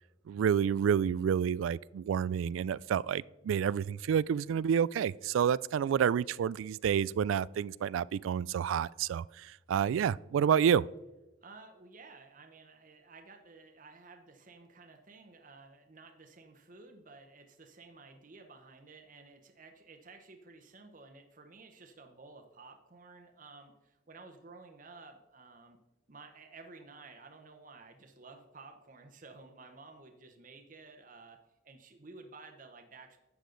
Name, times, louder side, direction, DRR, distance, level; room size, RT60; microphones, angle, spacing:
voice 1, 0.3-10.8, right 8 dB, 85° right, 0.3 m, -29 dB
voice 2, 11.4-25.8 26.1-31.4 31.6-33.2, right 3 dB, 45° right, 0.9 m, -53 dB
11.5 x 8.3 x 3.9 m
head